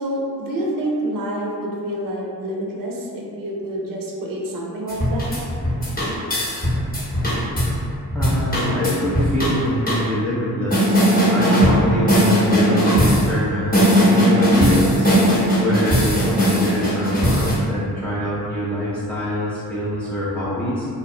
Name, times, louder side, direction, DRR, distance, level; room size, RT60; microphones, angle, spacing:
voice 1, 0.0-5.3, right 1 dB, 50° right, -3 dB, 0.6 m, -27 dB
sound 1, 4.9-7.7 8.1-9.5 9.9-10.0 10.7-11.8 12.1-13.3 13.7-17.5, equal, 20° left, 0.9 m, -18 dB
voice 2, 8.1-11.0 11.3-15.1 15.6-20.9, equal, 5° left, -11 dB, 0.4 m, -24 dB
2.3 x 2.0 x 2.6 m, 2.4 s
supercardioid pair, 50°, 45 cm